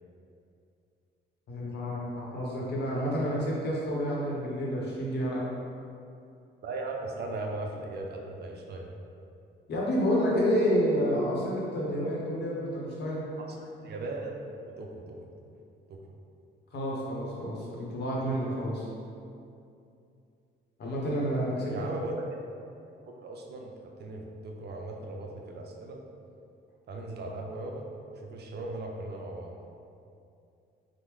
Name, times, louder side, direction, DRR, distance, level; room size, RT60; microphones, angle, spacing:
voice 1, 1.5-5.5 9.7-13.2 16.7-18.9 20.8-21.7, equal, 55° left, -4 dB, 0.8 m, -29 dB
voice 2, 6.6-8.9 13.4-14.4 14.8-15.4 15.9-16.0 21.7-22.1 23.1-26.0 26.9-27.9 28.1-29.5, right 2 dB, 55° right, 1 dB, 0.4 m, -38 dB
3.0 x 2.1 x 3.5 m, 2.5 s
cardioid pair, 90°, 20 cm